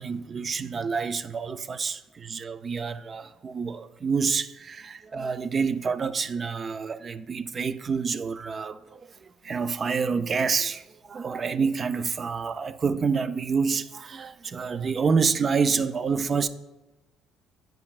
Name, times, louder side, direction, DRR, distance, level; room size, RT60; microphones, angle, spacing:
voice 1, 0.0-16.5, right 5 dB, 35° right, 0.3 m, -28 dB
8.9 x 5.3 x 2.4 m
cardioid pair, 105°, 0 cm